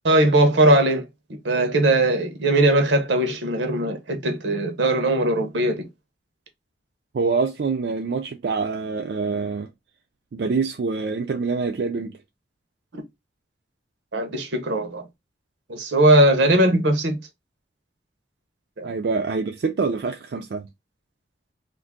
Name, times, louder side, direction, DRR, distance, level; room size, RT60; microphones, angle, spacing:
voice 1, 0.0-1.1 1.4-5.9 12.9-13.0 14.1-15.1 15.7-17.2 18.8-18.9, right 1 dB, 85° right, 0.8 m, -19 dB
voice 2, 7.1-9.7 10.3-12.2 18.8-20.7, right 4 dB, 65° right, 0.4 m, -25 dB
2.6 x 2.5 x 3.4 m
head